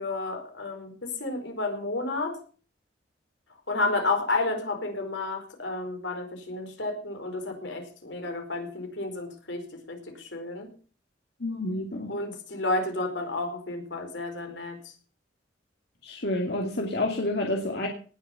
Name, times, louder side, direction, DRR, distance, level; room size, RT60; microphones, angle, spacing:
voice 1, 0.0-2.4 3.7-10.7 12.1-14.8, left 2 dB, 80° left, 4 dB, 4.6 m, -31 dB
voice 2, 11.4-12.1 16.0-17.9, left 1 dB, 60° left, 0 dB, 2.6 m, -29 dB
19.0 x 6.9 x 7.0 m, 0.40 s
head